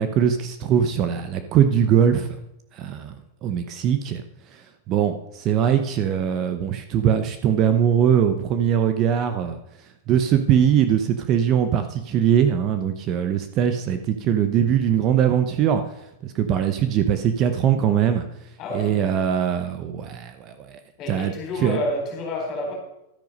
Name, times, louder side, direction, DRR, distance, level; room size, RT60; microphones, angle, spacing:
voice 1, 0.0-2.4 2.7-4.2 4.5-4.6 4.9-9.6 10.1-15.8 16.2-18.2 18.7-20.8 21.1-21.3 21.6-21.8, right 9 dB, 30° right, 9 dB, 0.8 m, -21 dB
voice 2, 18.6-19.0 21.0-22.7, left 1 dB, 30° left, 1 dB, 4.5 m, -29 dB
12.5 x 10.0 x 5.4 m, 0.86 s
supercardioid pair, 165°, 0 cm